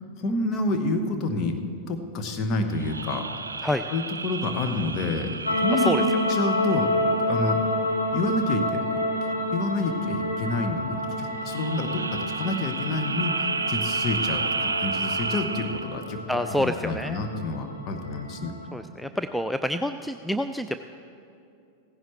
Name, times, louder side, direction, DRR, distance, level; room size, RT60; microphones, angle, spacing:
voice 1, 0.2-1.6 1.9-3.3 3.9-7.0 7.3-7.6 8.1-9.0 9.5-16.2 16.6-18.5, left 2 dB, 35° left, 5 dB, 1.4 m, -28 dB
sound 1, 2.7-7.5 11.3-16.1, right 4 dB, 75° right, 0.5 m, -32 dB
sound 2, 5.5-18.7, left 1 dB, 90° left, 1.5 m, -29 dB
voice 2, 5.7-6.0 16.3-17.2 18.7-20.8, left 1 dB, ahead, 8 dB, 0.4 m, -27 dB
16.5 x 15.5 x 3.3 m, 2.6 s
figure-of-eight pair, 90°, 0 cm